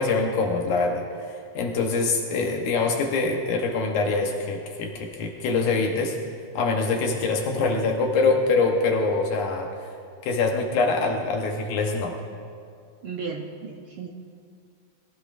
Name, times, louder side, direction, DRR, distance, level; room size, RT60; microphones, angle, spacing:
voice 1, 0.0-6.2 6.6-9.9 10.2-12.2, left 3 dB, 75° left, 2 dB, 2.5 m, -24 dB
voice 2, 13.0-14.1, right 5 dB, 75° right, 0 dB, 1.2 m, -34 dB
21.5 x 15.5 x 2.5 m, 2.3 s
omnidirectional pair, 3.6 m